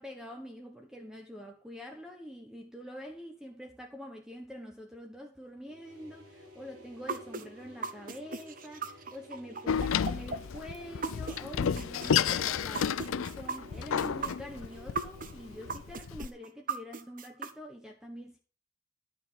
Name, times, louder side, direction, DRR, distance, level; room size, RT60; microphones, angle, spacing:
voice 1, 0.0-18.4, equal, 5° right, 1.1 m, -45 dB
sound 1, 5.6-16.1, equal, 80° right, 6.3 m, -53 dB
sound 2, 7.1-11.4 11.8-15.3 15.7-17.5, right 4 dB, 40° right, 0.9 m, -37 dB
Door, 9.7-16.3, left 7 dB, 65° left, 0.4 m, -31 dB
11.0 x 6.8 x 5.7 m
head